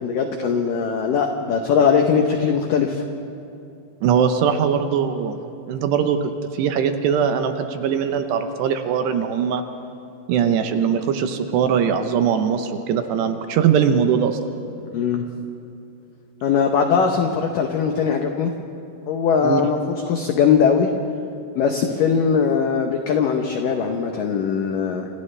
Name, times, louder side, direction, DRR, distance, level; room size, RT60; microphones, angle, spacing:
voice 1, 0.0-3.0 14.9-15.3 16.4-18.5 19.1-20.9 21.6-25.1, left 6 dB, 90° left, 4 dB, 1.9 m, -20 dB
voice 2, 4.0-5.4 5.7-6.2 6.5-9.6 10.3-14.4 19.4-19.6, right 7 dB, 75° right, 7 dB, 2.8 m, -21 dB
29.0 x 27.0 x 3.3 m, 2.7 s
omnidirectional pair, 5.4 m